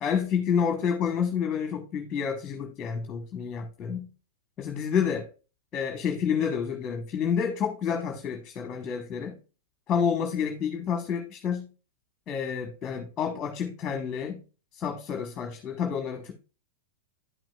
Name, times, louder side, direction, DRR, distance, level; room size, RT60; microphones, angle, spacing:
voice 1, 0.0-4.1 4.6-5.3 5.7-9.4 9.9-11.7 12.3-14.4 14.8-16.3, left 7 dB, 30° left, 4 dB, 1.1 m, -29 dB
11.0 x 6.0 x 2.3 m, 0.34 s
hypercardioid pair, 105°, 0 cm